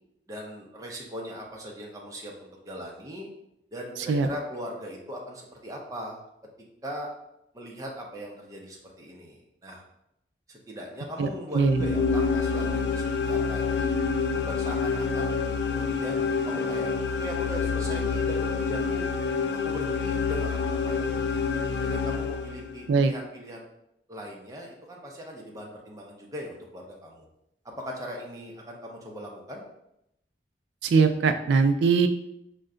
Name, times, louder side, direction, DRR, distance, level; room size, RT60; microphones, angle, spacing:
voice 1, 0.3-3.3 3.7-6.2 6.8-7.1 7.5-9.8 10.5-13.9 14.3-16.9 17.2-19.1 19.6-21.4 21.8-23.7 24.1-27.3 27.6-29.6, equal, 20° right, -1 dB, 0.6 m, -39 dB
sound 1, 11.5-22.9, left 5 dB, 70° left, 0.3 m, -27 dB
voice 2, 11.5-11.8 22.9-23.1 30.8-32.1, right 4 dB, 90° right, 8 dB, 0.3 m, -21 dB
4.4 x 2.2 x 3.7 m, 0.81 s
head